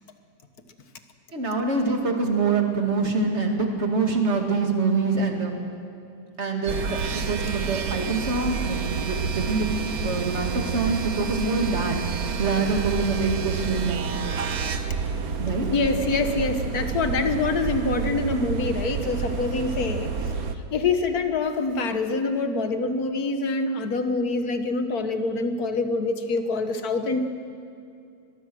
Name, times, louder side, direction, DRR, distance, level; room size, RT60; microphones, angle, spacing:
voice 1, 1.3-5.5 6.4-14.1 15.4-15.6, right 4 dB, 35° right, 2 dB, 2.4 m, -25 dB
sound 1, 6.7-20.5, right 5 dB, 55° right, 1.3 m, -29 dB
voice 2, 15.7-20.4 20.7-27.2, left 3 dB, 55° left, 8 dB, 1.6 m, -25 dB
22.5 x 22.0 x 6.3 m, 2.5 s
omnidirectional pair, 2.1 m